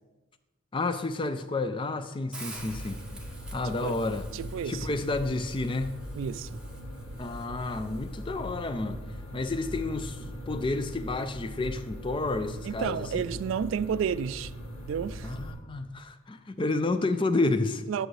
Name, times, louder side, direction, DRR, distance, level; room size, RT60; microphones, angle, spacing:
voice 1, 0.7-3.0 3.5-4.2 4.6-5.9 7.2-9.0 9.3-13.2 15.2-17.8, left 2 dB, 25° left, 0.4 m, -30 dB
Hiss, 2.3-8.4, right 2 dB, 5° right, 0.8 m, -49 dB
sound 1, 2.5-15.5, equal, 85° left, 1.6 m, -40 dB
voice 2, 3.6-4.0 4.3-4.9 6.2-6.5 12.6-14.5 14.9-15.3 17.9-18.1, right 7 dB, 75° right, 0.3 m, -31 dB
10.5 x 6.2 x 3.2 m
head